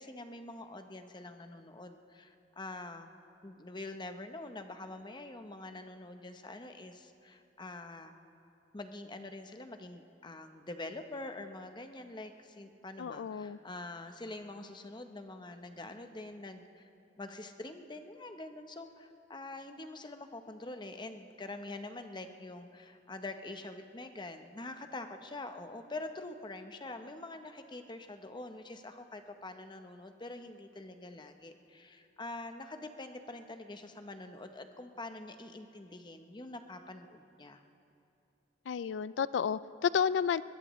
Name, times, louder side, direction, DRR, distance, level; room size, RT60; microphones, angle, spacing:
voice 1, 0.0-3.1 3.4-8.1 8.7-16.9 17.2-37.6, left 2 dB, 25° left, 7 dB, 0.8 m, -45 dB
voice 2, 13.0-13.6 38.7-40.4, left 7 dB, 75° left, 17 dB, 0.3 m, -31 dB
21.5 x 21.0 x 3.1 m, 2.7 s
head